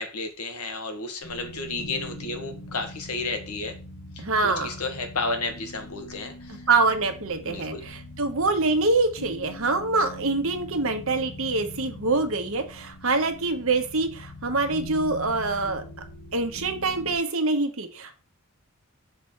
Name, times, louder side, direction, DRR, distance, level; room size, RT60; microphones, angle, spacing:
voice 1, 0.0-3.8 4.1-6.7 7.4-7.8, left 3 dB, 90° left, 6 dB, 1.4 m, -32 dB
sound 1, 1.2-17.2, left 1 dB, 75° left, 1.5 m, -42 dB
voice 2, 4.2-4.7 6.7-15.8 16.3-18.2, right 3 dB, 70° right, 6 dB, 1.2 m, -25 dB
5.9 x 3.3 x 5.8 m, 0.34 s
head